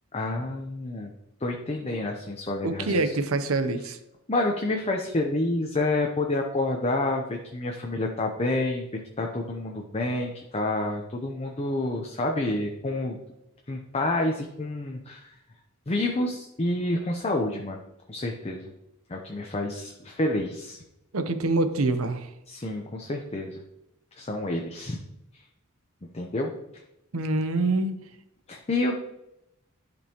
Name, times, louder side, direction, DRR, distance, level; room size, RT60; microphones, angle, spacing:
voice 1, 0.1-1.1 1.4-3.1 4.3-8.9 9.2-13.2 13.7-15.4 15.9-17.8 18.1-18.7 19.1-20.8 22.5-23.6 24.1-25.0 25.3-25.5 26.1-26.8 28.5-29.0, left 2 dB, 30° left, 2 dB, 0.7 m, -29 dB
voice 2, 2.6-4.0 21.1-22.3 27.1-28.0, right 2 dB, 85° right, 9 dB, 0.8 m, -25 dB
11.5 x 5.3 x 3.0 m, 0.87 s
head